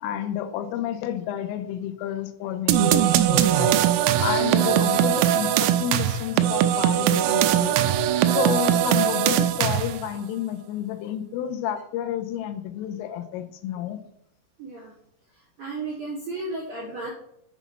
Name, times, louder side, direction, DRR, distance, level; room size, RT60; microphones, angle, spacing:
voice 1, 0.0-3.7 4.2-7.8 8.3-14.0, left 10 dB, 85° left, 8 dB, 3.2 m, -30 dB
sound 1, 2.7-10.1, right 11 dB, 85° right, 2.6 m, -21 dB
voice 2, 14.6-14.9 15.3-17.1, right 3 dB, 55° right, -6 dB, 1.9 m, -34 dB
7.2 x 6.1 x 5.6 m, 0.73 s
omnidirectional pair, 5.9 m